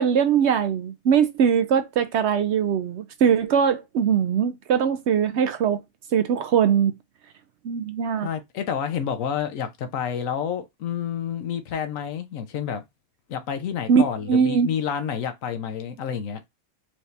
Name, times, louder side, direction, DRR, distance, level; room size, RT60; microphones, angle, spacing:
voice 1, 0.0-5.8 6.1-7.0 7.6-8.3 13.9-14.7, right 7 dB, 65° right, 0.7 m, -21 dB
voice 2, 8.2-12.8 13.3-16.4, left 8 dB, 75° left, 1.2 m, -29 dB
4.7 x 2.8 x 3.2 m
omnidirectional pair, 1.4 m